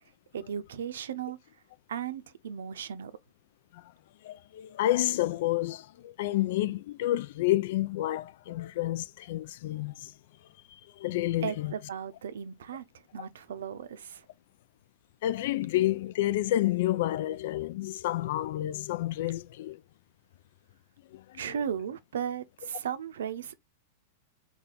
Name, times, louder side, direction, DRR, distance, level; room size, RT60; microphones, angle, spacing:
voice 1, 0.3-1.4 1.9-3.1 11.4-12.8 13.1-14.3 21.3-23.6, right 8 dB, 75° right, 0.6 m, -36 dB
voice 2, 4.2-10.1 10.7-11.7 15.2-19.8 21.1-21.4, left 15 dB, 60° left, 0.3 m, -30 dB
4.3 x 2.3 x 3.8 m
hypercardioid pair, 105°, 0 cm